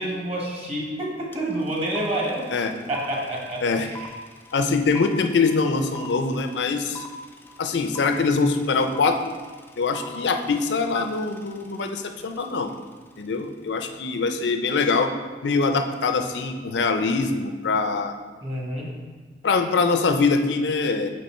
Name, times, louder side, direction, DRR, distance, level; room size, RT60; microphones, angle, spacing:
voice 1, 0.0-2.5 2.9-4.1 18.4-18.9, right 1 dB, 35° right, -2 dB, 1.2 m, -28 dB
sound 1, 1.3-1.4 1.6-12.8, right 1 dB, 10° left, 0.3 m, -41 dB
voice 2, 4.5-7.0 7.6-9.2 9.8-12.7 13.2-15.1 15.4-18.1 19.4-21.1, left 4 dB, 75° left, 7 dB, 0.5 m, -23 dB
5.3 x 4.2 x 4.3 m, 1.4 s
head